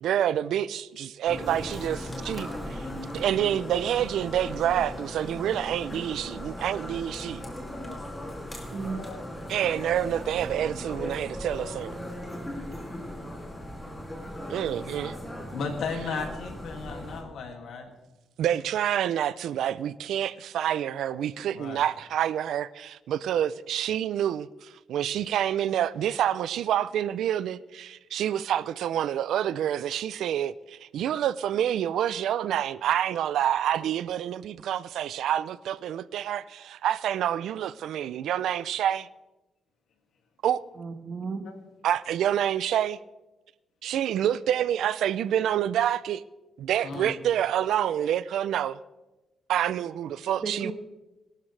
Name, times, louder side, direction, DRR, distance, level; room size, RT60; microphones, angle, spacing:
voice 1, 0.0-2.9 3.1-7.4 9.5-12.0 14.5-15.2 18.4-39.1 40.4-40.6 41.8-43.0 43.8-46.2 46.6-48.8 49.5-50.7, right 10 dB, 90° right, 0.4 m, -27 dB
sound 1, 1.3-17.2, left 1 dB, 15° left, 2.5 m, -38 dB
voice 2, 8.7-9.0 40.8-41.4 50.4-50.7, right 4 dB, 40° right, 1.4 m, -34 dB
voice 3, 15.5-17.9 21.5-21.8 41.5-41.6 46.8-47.1, left 5 dB, 75° left, 2.3 m, -35 dB
21.0 x 12.5 x 3.3 m
cardioid pair, 140°, 0 cm